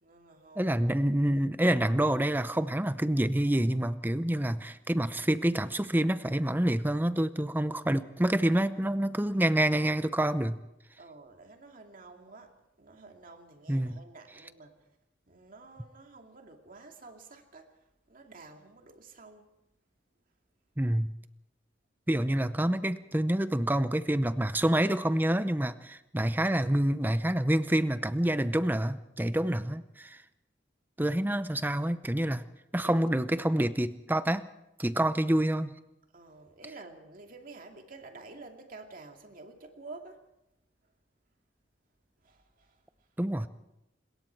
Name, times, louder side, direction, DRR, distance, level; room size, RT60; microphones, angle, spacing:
voice 1, 0.0-0.7 11.0-14.9 15.3-19.5 22.1-22.5 32.8-33.0 36.1-40.2 40.8-40.9 42.2-43.1 43.4-43.5, right 3 dB, 45° right, 3 dB, 2.4 m, -50 dB
voice 2, 0.6-10.6 13.7-14.0 20.8-21.1 22.1-30.2 31.0-32.4 32.7-34.5 34.8-35.7 43.2-43.5, right 1 dB, 10° right, 12 dB, 0.7 m, -27 dB
26.0 x 21.5 x 4.6 m, 0.89 s
head